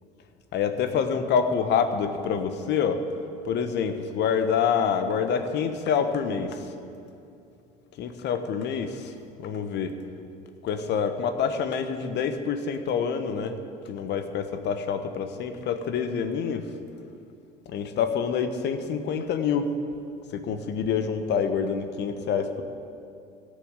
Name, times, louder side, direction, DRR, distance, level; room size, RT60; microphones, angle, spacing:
voice 1, 0.5-3.0 3.4-6.7 8.0-9.9 10.6-13.6 13.9-16.7 17.7-19.7 20.3-22.6, left 6 dB, 55° left, 9 dB, 1.1 m, -27 dB
15.5 x 6.6 x 8.2 m, 2.5 s
hypercardioid pair, 65°, 21 cm